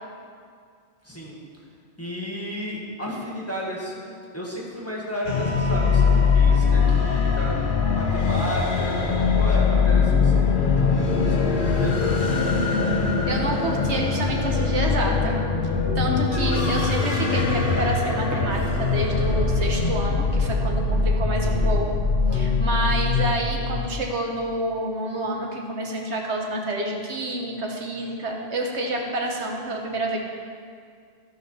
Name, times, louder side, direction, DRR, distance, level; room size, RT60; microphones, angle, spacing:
voice 1, 1.0-1.4 2.0-9.0 9.4-12.4 21.4-21.8, equal, 10° left, -4 dB, 1.7 m, -33 dB
sound 1, 5.2-24.0, left 4 dB, 50° left, 1.1 m, -22 dB
voice 2, 6.5-6.9 13.3-15.4 15.9-21.9 22.3-30.2, right 1 dB, 75° right, 0 dB, 1.4 m, -28 dB
14.5 x 5.4 x 5.6 m, 2.2 s
omnidirectional pair, 1.2 m